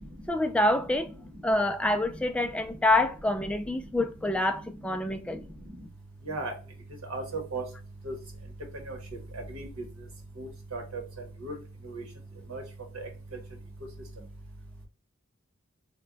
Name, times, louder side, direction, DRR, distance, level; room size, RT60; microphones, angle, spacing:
voice 1, 0.3-1.1 1.4-5.5, left 1 dB, 5° left, 0.3 m, -26 dB
voice 2, 7.1-7.6 8.0-8.1 8.9-9.0 9.3-9.6 10.4-11.0 11.4-11.5 11.9-12.0 12.5-12.6 12.9-13.1, right 3 dB, 90° right, 1.2 m, -35 dB
3.3 x 2.2 x 3.8 m
head